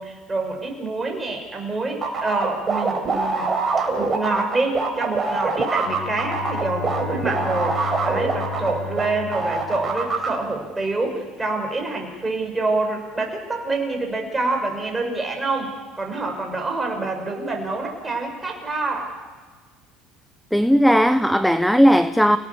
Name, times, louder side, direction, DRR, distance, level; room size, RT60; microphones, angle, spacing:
voice 1, 0.0-3.5 4.0-19.1, right 3 dB, 15° right, 6.4 m, -26 dB
sound 1, 2.0-9.1 9.3-10.3, right 4 dB, 35° right, 5.1 m, -24 dB
Bowed string instrument, 5.8-10.5, left 7 dB, 80° left, 4.6 m, -33 dB
voice 2, 20.5-22.4, equal, ahead, 0.8 m, -16 dB
29.5 x 18.0 x 7.3 m
hypercardioid pair, 75°, 0 cm